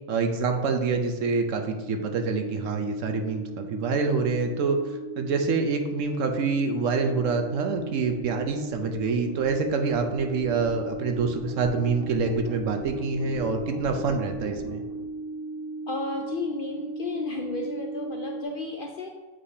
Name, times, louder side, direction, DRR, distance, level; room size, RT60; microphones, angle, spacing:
voice 1, 0.1-4.8 5.2-14.8, right 4 dB, 70° right, 5 dB, 1.0 m, -26 dB
sound 1, 1.6-18.4, right 2 dB, 10° right, 1.2 m, -37 dB
voice 2, 15.9-19.1, left 3 dB, 60° left, 2 dB, 0.6 m, -33 dB
7.7 x 4.9 x 2.8 m, 1.3 s
omnidirectional pair, 1.4 m